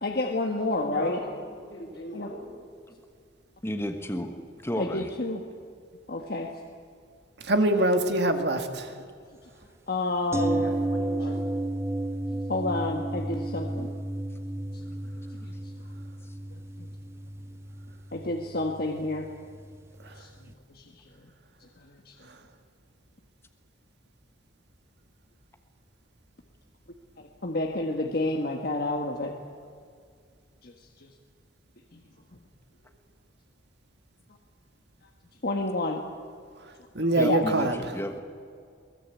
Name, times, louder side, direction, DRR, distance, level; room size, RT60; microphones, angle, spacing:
voice 1, 0.0-1.2 2.1-2.3 4.8-5.4 6.1-6.5 9.9-10.6 12.5-13.9 16.5-16.9 18.1-19.3 20.2-20.3 20.7-21.0 21.8-22.1 27.4-29.3 30.6-30.7 31.0-31.1 31.9-32.0 35.4-36.0 37.2-37.4, left 2 dB, 55° left, 2 dB, 1.6 m, -29 dB
voice 2, 0.8-1.4 1.7-2.4 10.5-11.4, left 1 dB, 90° left, -2 dB, 7.6 m, -38 dB
voice 3, 3.6-4.3 4.6-5.1 14.9-15.0 37.2-38.2, equal, 15° left, 5 dB, 1.3 m, -32 dB
voice 4, 7.4-8.9 36.9-37.8, right 1 dB, 60° right, 6 dB, 2.1 m, -24 dB
sound 1, 10.3-20.2 20.5-20.6, right 1 dB, 15° right, 0.6 m, -33 dB
23.0 x 19.5 x 8.4 m, 2.2 s
head